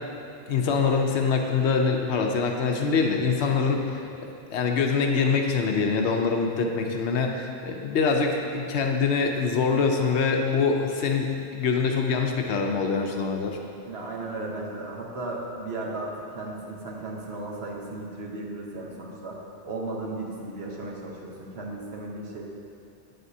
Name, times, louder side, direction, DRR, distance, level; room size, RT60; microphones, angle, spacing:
voice 1, 0.5-4.1 4.5-13.6, left 5 dB, 80° left, 3 dB, 1.0 m, -24 dB
voice 2, 13.9-19.3 19.6-22.4, right 2 dB, 70° right, -2 dB, 1.2 m, -35 dB
8.2 x 7.8 x 2.7 m, 2.8 s
omnidirectional pair, 1.1 m